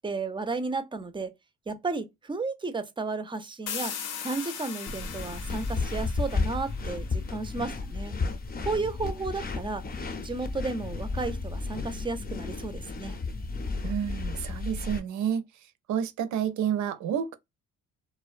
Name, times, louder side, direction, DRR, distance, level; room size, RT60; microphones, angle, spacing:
voice 1, 0.0-1.3 1.7-3.9 4.2-8.1 8.6-9.8 10.2-13.2, right 3 dB, 15° right, 0.4 m, -33 dB
sound 1, 3.7-7.3, left 8 dB, 85° left, 0.6 m, -39 dB
sound 2, 4.9-15.0, left 3 dB, 30° left, 0.6 m, -33 dB
voice 2, 13.8-15.5 15.9-17.4, right 9 dB, 70° right, 0.5 m, -29 dB
2.5 x 2.1 x 2.4 m
cardioid pair, 90°, 30 cm